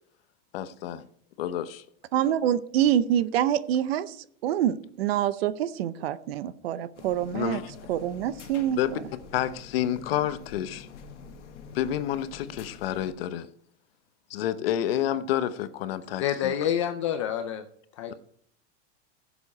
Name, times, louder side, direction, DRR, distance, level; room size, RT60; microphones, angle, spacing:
voice 1, 0.5-1.1 1.4-1.8 7.3-7.7 8.8-8.9 9.3-10.9 11.7-13.5 14.3-16.5, left 11 dB, 55° left, 0.9 m, -29 dB
voice 2, 2.1-7.6 7.9-9.0, right 10 dB, 55° right, 0.8 m, -26 dB
sound 1, 7.0-13.1, left 6 dB, 80° left, 1.9 m, -46 dB
voice 3, 16.2-17.6 18.0-18.1, left 9 dB, 25° left, 0.4 m, -27 dB
15.5 x 7.1 x 4.1 m
supercardioid pair, 175°, 35 cm